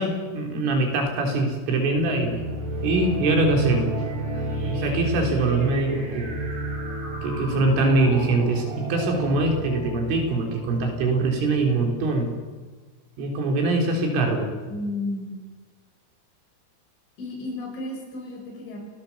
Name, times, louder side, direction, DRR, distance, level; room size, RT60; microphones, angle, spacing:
voice 1, 0.0-2.5 2.8-4.0 4.6-6.3 7.2-12.3 13.2-14.5, right 2 dB, 70° right, 3 dB, 5.8 m, -23 dB
sound 1, 1.9-12.1, right 2 dB, 45° right, 7.1 m, -31 dB
voice 2, 4.3-4.7 14.7-15.3 17.2-18.8, left 2 dB, 65° left, 1 dB, 8.4 m, -33 dB
29.5 x 18.5 x 7.2 m, 1.4 s
omnidirectional pair, 6.0 m